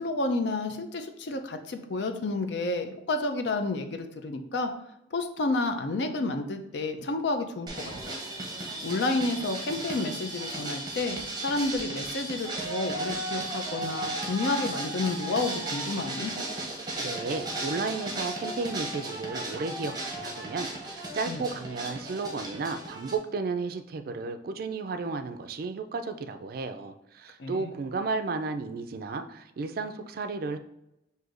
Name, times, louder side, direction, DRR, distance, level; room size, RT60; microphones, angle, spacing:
voice 1, 0.0-4.7 5.1-8.2 8.6-16.3 21.3-21.4 27.4-27.7, left 2 dB, 70° left, 6 dB, 0.5 m, -30 dB
sound 1, 7.7-23.2, right 2 dB, 20° right, 0.7 m, -35 dB
voice 2, 17.0-30.6, right 4 dB, 50° right, 8 dB, 0.3 m, -33 dB
6.3 x 2.7 x 2.5 m, 0.83 s
head